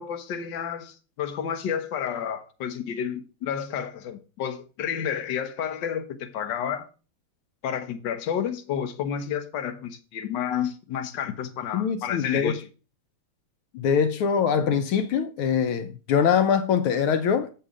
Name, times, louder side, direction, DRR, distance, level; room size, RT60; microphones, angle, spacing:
voice 1, 0.0-6.9 7.6-12.7, left 8 dB, 60° left, 1.5 m, -30 dB
voice 2, 11.7-12.6 13.7-17.5, left 7 dB, 80° left, 1.5 m, -23 dB
7.6 x 5.5 x 4.9 m
omnidirectional pair, 2.4 m